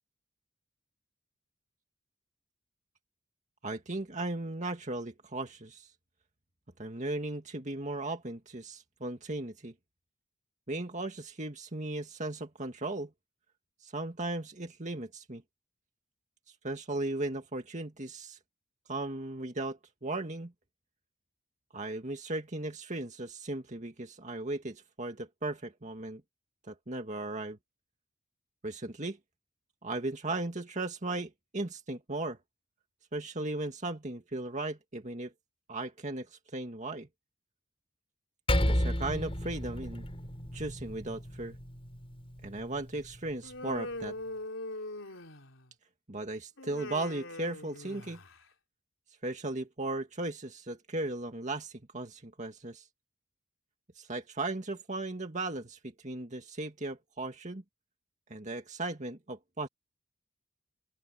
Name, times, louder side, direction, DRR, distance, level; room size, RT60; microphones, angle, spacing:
voice 1, 3.6-5.9 6.8-9.7 10.7-13.1 13.8-15.4 16.6-18.4 18.9-20.5 21.7-26.2 26.6-27.6 28.6-29.2 29.8-32.4 33.1-35.3 35.7-37.1 38.7-40.0 40.5-41.6 42.4-44.2 46.1-48.2 49.2-52.9 54.0-57.6 58.3-59.7, right 2 dB, 35° right, 2.0 m, -37 dB
Percussion, 38.5-43.3, equal, 30° left, 7.0 m, -33 dB
Human voice, 43.4-45.7 46.6-48.4, left 2 dB, 85° left, 4.0 m, -41 dB
open air
head